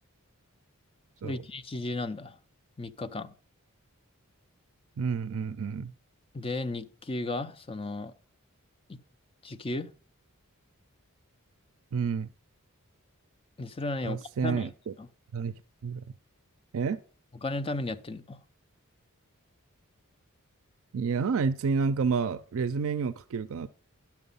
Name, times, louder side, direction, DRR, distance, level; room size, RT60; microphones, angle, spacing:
voice 1, 1.2-2.4 2.8-3.3 6.3-8.1 8.9-9.0 9.4-9.9 13.6-14.7 15.0-15.1 17.4-18.4, left 2 dB, 25° left, 0.5 m, -34 dB
voice 2, 5.0-5.9 11.9-12.3 14.0-14.7 15.3-15.5 15.8-16.0 16.7-17.0 20.9-23.7, right 5 dB, 65° right, 0.4 m, -29 dB
11.0 x 5.9 x 5.4 m
head